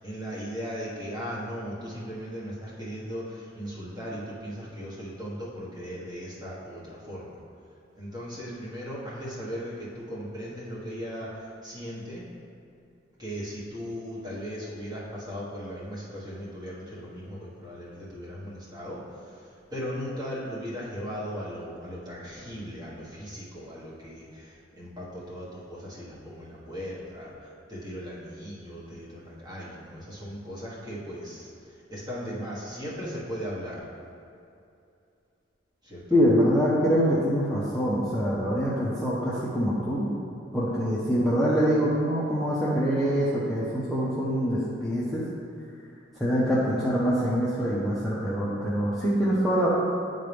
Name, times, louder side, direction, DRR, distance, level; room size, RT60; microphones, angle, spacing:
voice 1, 0.0-6.8 7.1-7.3 8.0-11.3 11.6-12.2 13.2-19.0 19.7-27.3 27.7-31.5 31.9-33.8 35.9-36.2, equal, 20° right, -8 dB, 1.6 m, -37 dB
voice 2, 36.1-40.1 40.5-45.2 46.2-49.7, equal, ahead, -10 dB, 0.7 m, -24 dB
9.8 x 3.8 x 3.5 m, 2.6 s
head